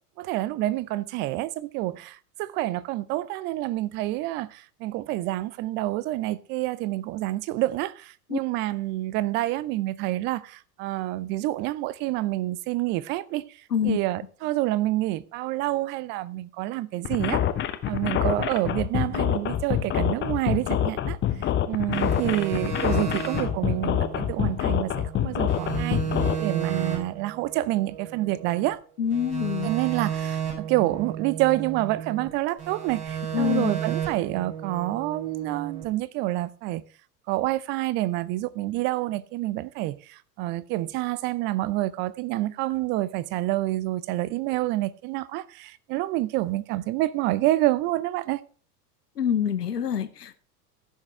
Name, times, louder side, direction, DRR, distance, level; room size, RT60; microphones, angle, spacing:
voice 1, 0.2-13.4 13.8-17.4 17.9-21.2 21.7-26.0 26.4-28.8 29.6-36.8 37.3-48.4, right 16 dB, 25° right, 0.4 m, -28 dB
sound 1, 17.0-26.3, left 11 dB, 25° left, 0.9 m, -26 dB
sound 2, 21.9-25.2 25.5-28.7 29.1-32.3 32.6-35.8, right 8 dB, 55° right, 5.9 m, -33 dB
voice 2, 29.0-29.7 33.3-33.7 49.2-50.4, left 8 dB, 80° left, 0.9 m, -26 dB
15.0 x 6.4 x 3.2 m
figure-of-eight pair, 85°, 47 cm